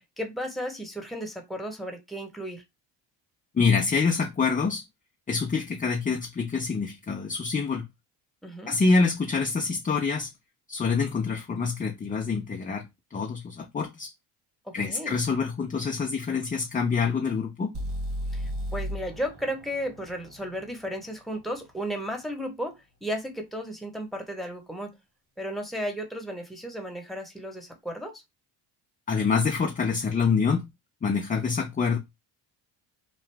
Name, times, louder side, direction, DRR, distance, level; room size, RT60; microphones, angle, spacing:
voice 1, 0.0-2.6 8.4-8.8 14.6-15.2 18.3-25.0 25.4-28.2, equal, ahead, 1.0 m, -34 dB
voice 2, 3.5-4.8 5.3-7.8 8.7-10.3 10.7-12.8 13.1-14.1 14.7-17.7 29.1-30.7 31.0-32.0, left 4 dB, 20° left, 0.5 m, -26 dB
sound 1, 17.7-21.7, equal, 60° right, 1.3 m, -35 dB
2.8 x 2.4 x 3.3 m
supercardioid pair, 75°, 45 cm